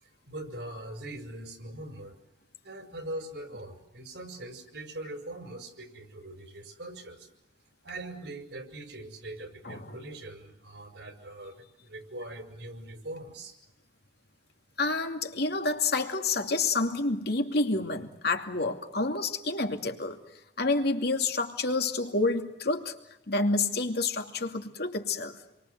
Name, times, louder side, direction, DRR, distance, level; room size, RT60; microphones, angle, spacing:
voice 1, 0.0-2.2 2.6-7.3 7.8-13.6, right 1 dB, 75° right, 6 dB, 5.6 m, -42 dB
voice 2, 9.6-10.0 14.8-20.2 20.6-22.9 23.3-25.4, left 3 dB, 65° left, 5 dB, 2.6 m, -28 dB
28.5 x 23.5 x 8.0 m, 0.90 s
head